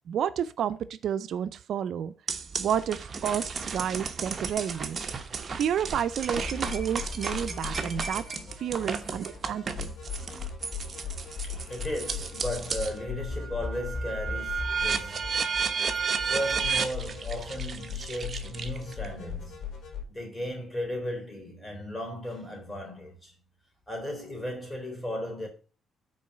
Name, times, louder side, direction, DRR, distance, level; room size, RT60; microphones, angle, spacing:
voice 1, 0.0-2.1 2.6-5.0 5.5-8.2 8.6-9.9, right 9 dB, 70° right, 0.5 m, -30 dB
sound 1, 2.3-13.0 13.4-19.1, right 5 dB, 40° right, 1.1 m, -33 dB
sound 2, 6.3-20.0, left 5 dB, 70° left, 4.1 m, -38 dB
voice 2, 11.2-15.4 16.2-19.7 20.1-23.3 23.9-25.5, equal, 15° left, 3.8 m, -36 dB
6.2 x 4.6 x 6.6 m
cardioid pair, 90°, 0 cm